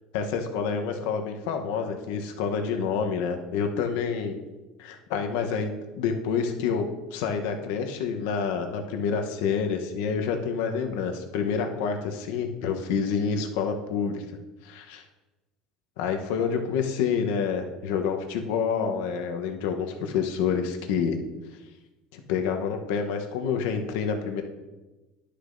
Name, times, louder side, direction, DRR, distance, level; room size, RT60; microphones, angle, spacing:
voice 1, 0.1-4.4 4.8-14.2 14.6-15.0 16.0-21.2 22.1-24.4, left 6 dB, 80° left, 4 dB, 0.9 m, -28 dB
11.0 x 6.7 x 2.6 m, 1.1 s
cardioid pair, 150°, 0 cm